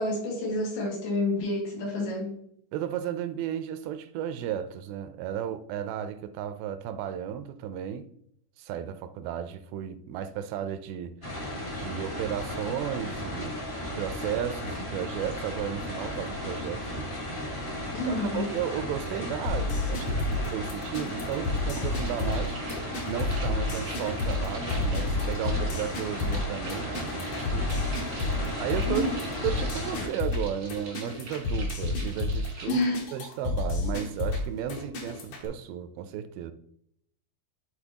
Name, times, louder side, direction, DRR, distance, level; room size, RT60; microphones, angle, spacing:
voice 1, 0.0-2.4 17.9-18.5 28.8-29.2 32.7-33.1, left 2 dB, 90° left, 4.1 m, -28 dB
voice 2, 2.7-8.1 8.6-11.2 11.8-13.6 14.0-17.1 18.0-20.2 20.5-22.6 23.1-27.9 28.6-29.1 29.4-32.8 33.1-36.5, right 9 dB, 80° right, 2.3 m, -34 dB
sound 1, 11.2-30.1, left 1 dB, 25° left, 1.1 m, -35 dB
sound 2, 19.5-35.5, left 2 dB, 65° left, 2.7 m, -30 dB
sound 3, 20.2-20.3 20.5-32.7, right 3 dB, 50° right, 1.1 m, -45 dB
11.5 x 4.2 x 2.9 m
omnidirectional pair, 4.4 m